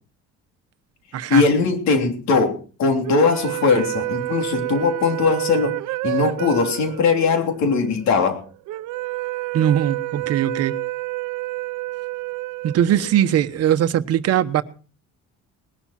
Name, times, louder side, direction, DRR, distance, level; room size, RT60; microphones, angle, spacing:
voice 1, 1.3-5.8 6.0-8.4, left 4 dB, 60° left, 3.3 m, -20 dB
sound 1, 3.0-13.5, right 19 dB, 70° right, 0.7 m, -29 dB
voice 2, 9.5-10.7 12.6-14.6, right 10 dB, 50° right, 1.2 m, -20 dB
20.0 x 12.0 x 4.4 m
cardioid pair, 165°, 31 cm